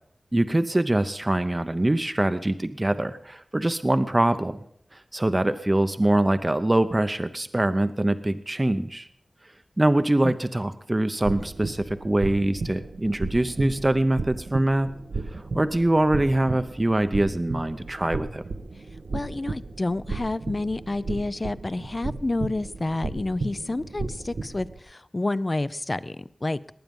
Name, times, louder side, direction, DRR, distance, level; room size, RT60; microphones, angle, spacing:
voice 1, 0.3-4.6 4.9-9.1 9.8-14.9 15.5-18.4, right 1 dB, 25° right, 10 dB, 0.7 m, -23 dB
sound 1, 11.2-24.8, right 3 dB, 90° right, 1.1 m, -34 dB
voice 2, 19.1-26.6, left 2 dB, 35° left, 16 dB, 0.5 m, -29 dB
19.5 x 9.1 x 5.3 m, 0.68 s
wide cardioid pair, 70°, 0 cm